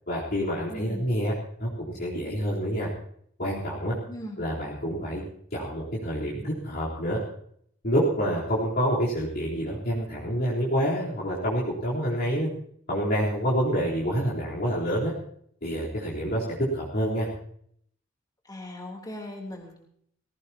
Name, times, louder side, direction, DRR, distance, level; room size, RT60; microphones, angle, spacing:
voice 1, 0.1-1.3 1.6-2.9 3.4-4.0 4.4-5.2 5.5-7.2 7.8-12.5 12.9-15.1 15.6-16.4 16.7-17.3, equal, 55° left, -7 dB, 3.9 m, -27 dB
voice 2, 0.7-1.0 4.1-4.4 18.5-19.8, left 1 dB, 20° left, 0 dB, 3.4 m, -39 dB
19.5 x 17.5 x 2.9 m, 0.66 s
head